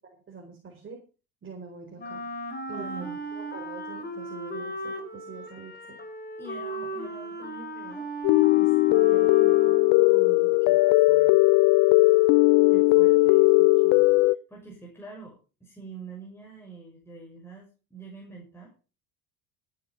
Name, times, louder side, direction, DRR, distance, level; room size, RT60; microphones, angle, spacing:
voice 1, 0.3-1.0 1.4-2.2 2.7-6.0 8.5-9.8, right 5 dB, 30° right, 1 dB, 4.8 m, -44 dB
Wind instrument woodwind instrument, 2.0-10.1, right 1 dB, 25° left, 3.8 m, -37 dB
voice 2, 2.7-3.2 6.4-8.1 10.0-11.4 11.8-11.9 12.6-18.7, right 4 dB, 5° left, -2 dB, 6.3 m, -45 dB
sound 1, 8.2-14.3, left 22 dB, 60° left, 0.5 m, -19 dB
14.5 x 9.7 x 5.6 m, 0.35 s
supercardioid pair, 95°, 39 cm